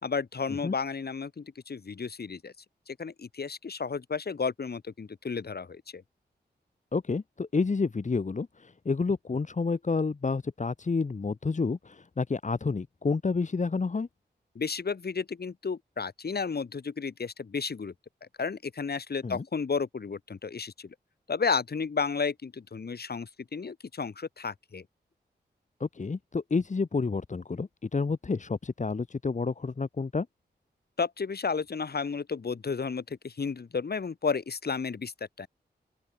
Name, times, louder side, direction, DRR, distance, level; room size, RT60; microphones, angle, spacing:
voice 1, 0.0-2.5 2.9-6.0 14.5-17.9 18.2-20.9 21.3-24.8 31.0-35.1 35.4-35.5, left 5 dB, 65° left, 6.0 m, -32 dB
voice 2, 6.9-14.1 19.2-19.4 25.8-30.3, left 4 dB, 45° left, 1.7 m, -29 dB
open air
cardioid pair, 70°, 18 cm